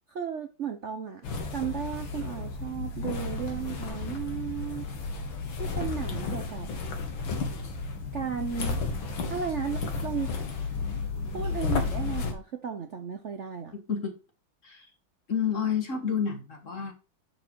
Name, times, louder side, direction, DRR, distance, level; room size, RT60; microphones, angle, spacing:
voice 1, 0.1-1.2 1.5-4.9 5.6-6.7 8.1-8.8 9.3-10.4 11.3-13.7, right 7 dB, 55° right, 0.8 m, -34 dB
sound 1, 1.2-12.3, left 4 dB, 80° left, 2.3 m, -32 dB
voice 2, 13.7-14.1 14.6-14.9 15.3-16.9, left 7 dB, 40° left, 1.8 m, -29 dB
11.0 x 4.7 x 4.5 m
omnidirectional pair, 2.1 m